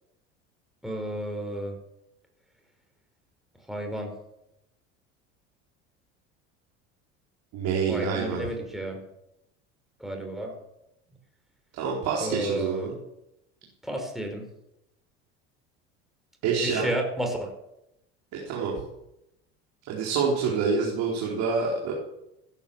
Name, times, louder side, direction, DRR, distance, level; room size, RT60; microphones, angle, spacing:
voice 1, 0.8-1.7 3.7-4.1 7.9-9.0 10.0-10.5 12.2-12.9 13.8-14.4 16.6-17.5, right 1 dB, ahead, 2 dB, 4.8 m, -31 dB
voice 2, 7.5-8.4 11.8-12.9 16.4-16.9 18.4-18.7 19.9-21.9, right 5 dB, 60° right, -3 dB, 4.2 m, -27 dB
16.0 x 9.9 x 7.2 m, 0.88 s
hypercardioid pair, 80°, 34 cm